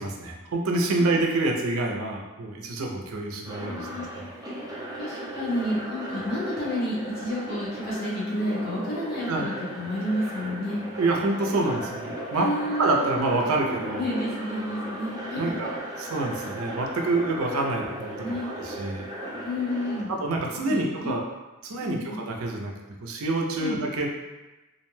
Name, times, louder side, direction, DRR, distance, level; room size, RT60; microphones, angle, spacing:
voice 1, 0.0-4.3 9.3-9.5 11.0-12.5 12.8-14.1 15.3-19.1 20.1-21.2 21.6-22.7 23.0-24.1, right 2 dB, 80° right, 1 dB, 0.5 m, -27 dB
voice 2, 3.3-4.2 5.0-10.8 12.3-13.2 14.0-15.6 18.2-18.5 19.4-20.1 20.6-21.1 21.8-22.2 23.6-23.8, left 1 dB, 45° left, -7 dB, 0.9 m, -30 dB
sound 1, 3.4-20.0, right 1 dB, 20° right, 0.5 m, -36 dB
2.5 x 2.1 x 3.1 m, 1.1 s
head